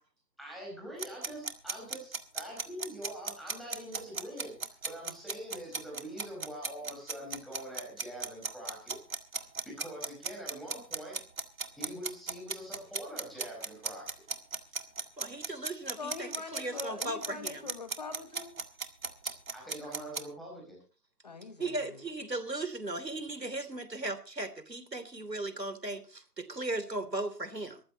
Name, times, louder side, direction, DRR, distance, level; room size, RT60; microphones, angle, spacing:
voice 1, 0.4-9.0 9.6-11.2 11.7-14.2 19.5-20.8, equal, ahead, -2 dB, 4.9 m, -44 dB
sound 1, 1.0-20.2, right 4 dB, 55° right, 2.1 m, -36 dB
voice 2, 15.2-17.7 21.6-27.8, right 2 dB, 80° right, 12 dB, 3.3 m, -37 dB
voice 3, 16.0-18.5 21.2-22.0, left 4 dB, 25° left, 12 dB, 1.2 m, -43 dB
22.0 x 14.5 x 2.9 m, 0.36 s
figure-of-eight pair, 150°, 49 cm